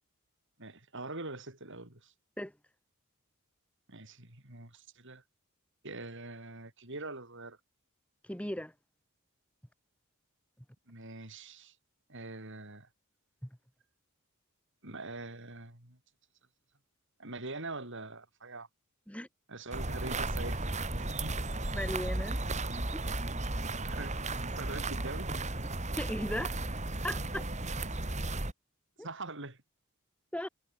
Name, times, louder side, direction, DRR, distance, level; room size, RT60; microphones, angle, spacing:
voice 1, 0.6-2.1 3.9-5.2 5.8-7.6 10.9-11.8 12.1-12.9 14.8-16.0 17.2-18.7 19.5-20.7 21.0-21.4 23.9-24.2 24.6-25.3 29.0-29.6, right 2 dB, 60° right, 7.4 m, -43 dB
voice 2, 8.3-8.7 13.4-13.5 19.1-19.3 21.7-22.4 22.9-23.2 26.0-26.5 27.0-27.4 30.3-30.5, left 1 dB, 5° left, 5.0 m, -37 dB
sound 1, 19.7-28.5, right 2 dB, 35° right, 3.6 m, -34 dB
head